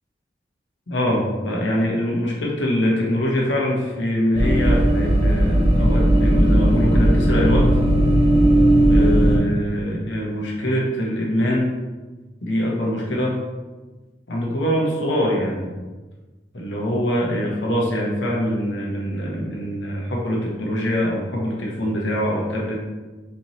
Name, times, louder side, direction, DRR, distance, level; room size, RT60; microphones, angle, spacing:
voice 1, 0.9-7.7 8.9-11.7 12.4-13.4 14.3-15.7 16.5-22.8, equal, 85° left, -2 dB, 0.9 m, -23 dB
sound 1, 4.3-9.4, right 1 dB, 30° right, 0.6 m, -16 dB
4.4 x 2.8 x 2.9 m, 1.3 s
head